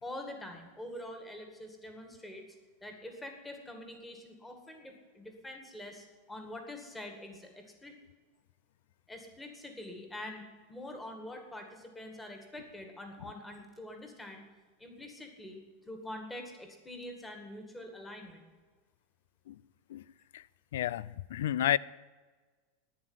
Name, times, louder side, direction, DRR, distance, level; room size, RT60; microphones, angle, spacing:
voice 1, 0.0-2.5 2.8-8.0 9.1-14.4 14.8-18.4, left 1 dB, 5° left, 2.0 m, -45 dB
voice 2, 20.7-21.8, left 12 dB, 80° left, 0.5 m, -31 dB
11.0 x 9.6 x 9.7 m
supercardioid pair, 160°, 0 cm